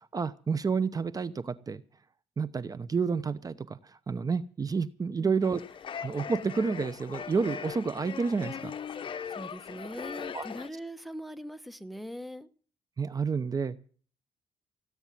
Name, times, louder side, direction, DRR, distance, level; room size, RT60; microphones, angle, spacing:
voice 1, 0.1-1.8 2.4-5.6 6.0-9.0 10.3-10.4 13.0-13.8, right 5 dB, 30° right, 16 dB, 0.9 m, -30 dB
sound 1, 5.4-10.7, left 7 dB, 45° left, 1.0 m, -39 dB
voice 2, 9.3-12.5, equal, ahead, 13 dB, 1.2 m, -41 dB
17.5 x 8.9 x 7.5 m, 0.43 s
cardioid pair, 95°, 12 cm